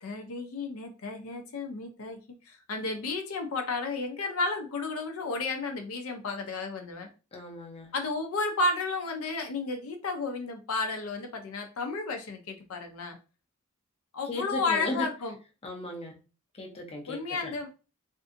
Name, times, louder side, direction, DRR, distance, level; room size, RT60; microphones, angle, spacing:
voice 1, 0.0-2.2 2.5-7.1 7.9-13.2 14.1-15.3 17.1-17.7, left 3 dB, 75° left, 0.5 m, -32 dB
voice 2, 7.3-7.9 14.2-15.1 15.6-16.2 16.5-17.5, left 1 dB, 25° left, 0.6 m, -36 dB
2.6 x 2.5 x 2.5 m
head